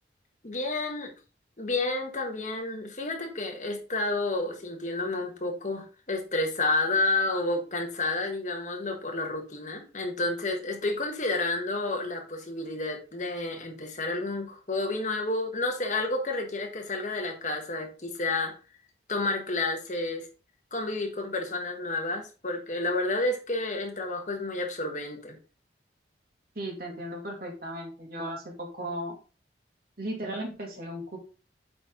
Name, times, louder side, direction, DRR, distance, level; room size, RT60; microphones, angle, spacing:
voice 1, 0.4-1.1 1.6-18.6 19.1-20.2 20.7-25.4, left 2 dB, 40° left, 3 dB, 1.3 m, -30 dB
voice 2, 26.6-29.2 30.0-31.2, right 1 dB, 55° right, 1 dB, 2.2 m, -36 dB
8.5 x 4.2 x 3.6 m, 0.33 s
head